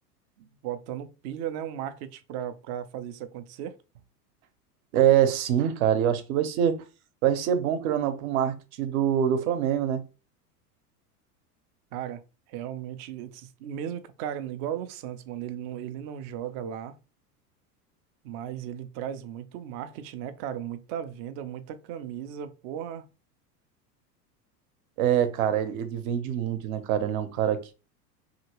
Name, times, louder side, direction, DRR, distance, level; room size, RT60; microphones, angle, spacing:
voice 1, 0.4-3.8 11.9-12.2 12.5-17.0 18.2-23.1, right 10 dB, 35° right, 0.4 m, -36 dB
voice 2, 4.9-6.8 7.2-10.0 25.0-27.7, right 9 dB, 60° right, 0.8 m, -24 dB
2.8 x 2.8 x 2.8 m
hypercardioid pair, 90°, 47 cm